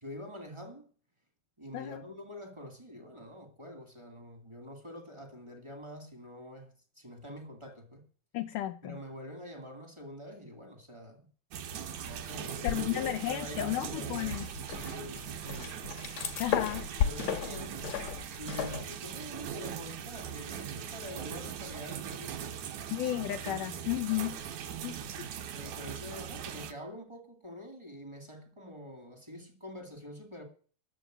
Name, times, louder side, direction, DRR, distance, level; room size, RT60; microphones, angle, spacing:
voice 1, 0.0-0.8 1.6-8.0 8.8-11.3 12.0-15.9 17.0-17.8 18.4-22.7 24.6-24.7 25.5-30.4, left 1 dB, 15° right, 0.9 m, -46 dB
voice 2, 8.3-9.0 12.6-14.5 16.4-16.9 22.9-24.4 24.8-25.3, left 14 dB, 80° left, 1.9 m, -33 dB
sound 1, 11.5-26.7, right 8 dB, 70° right, 1.9 m, -40 dB
sound 2, 12.7-13.4 13.7-18.8, left 8 dB, 60° left, 1.9 m, -35 dB
10.0 x 7.1 x 9.1 m
omnidirectional pair, 4.4 m